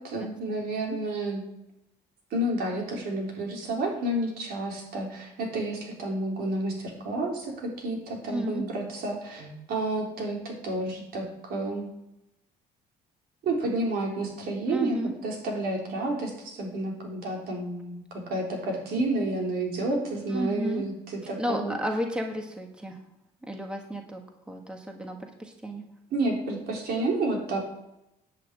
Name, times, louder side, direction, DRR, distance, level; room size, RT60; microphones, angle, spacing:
voice 1, 0.1-1.4 2.3-11.9 13.4-15.0 15.2-21.7 26.1-27.6, right 2 dB, 65° right, 0 dB, 3.8 m, -30 dB
voice 2, 8.3-8.6 14.7-15.1 20.3-20.8 21.2-23.0 23.4-24.2 24.5-25.8, equal, 5° right, 3 dB, 1.5 m, -32 dB
10.5 x 5.8 x 8.5 m, 0.88 s
cardioid pair, 110°, 17 cm